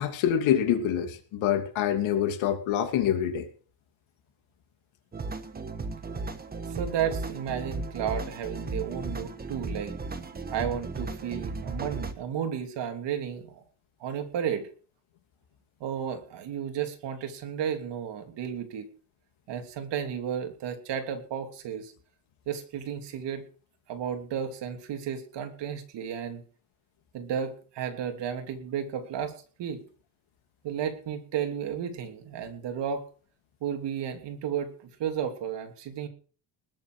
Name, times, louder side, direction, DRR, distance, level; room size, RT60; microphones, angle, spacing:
voice 1, 0.0-3.5, left 10 dB, 80° left, 6 dB, 3.0 m, -26 dB
sound 1, 5.1-12.1, right 3 dB, 20° right, 1.4 m, -35 dB
voice 2, 6.7-10.0 10.5-13.6 14.0-14.7 15.8-18.9 19.5-21.9 22.5-23.4 23.9-26.4 27.1-29.8 30.6-33.1 33.6-36.1, right 8 dB, 60° right, 6 dB, 3.0 m, -33 dB
20.0 x 7.4 x 6.3 m, 0.41 s
cardioid pair, 160°, 47 cm